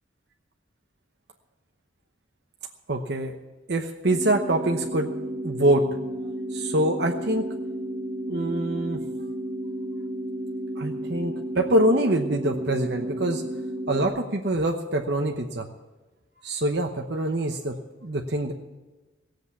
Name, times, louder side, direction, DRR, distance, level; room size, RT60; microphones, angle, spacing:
voice 1, 2.9-3.3 3.7-5.1 5.4-5.8 6.5-7.4 8.3-9.0 10.8-13.4 13.9-15.7 16.4-17.7 18.0-18.5, right 1 dB, 60° right, 3 dB, 1.0 m, -25 dB
sound 1, 4.1-14.1, right 1 dB, 25° right, 2.6 m, -32 dB
17.5 x 8.0 x 8.3 m, 1.2 s
head